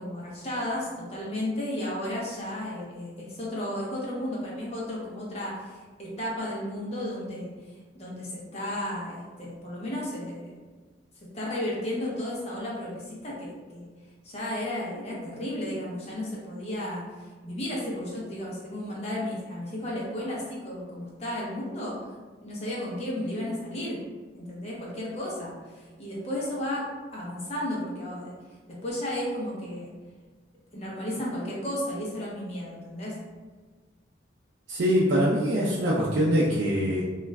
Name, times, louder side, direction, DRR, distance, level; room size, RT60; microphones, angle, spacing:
voice 1, 0.0-10.5 11.3-13.9 14.2-22.0 22.4-24.0 24.3-28.3 28.7-29.9 30.7-33.2, left 1 dB, 35° left, -5 dB, 0.7 m, -33 dB
voice 2, 34.7-37.0, equal, 75° right, -5 dB, 0.4 m, -23 dB
2.4 x 2.2 x 3.1 m, 1.4 s
head